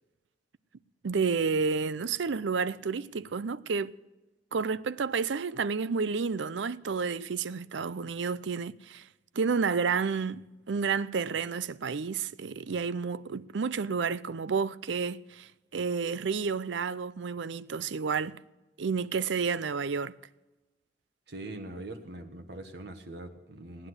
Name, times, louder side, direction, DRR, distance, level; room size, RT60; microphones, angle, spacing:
voice 1, 1.0-3.9 4.5-9.1 9.3-18.4 18.8-20.1, right 5 dB, 85° right, 0.5 m, -30 dB
voice 2, 21.3-23.9, right 2 dB, 65° right, 1.2 m, -42 dB
18.0 x 10.0 x 7.9 m
head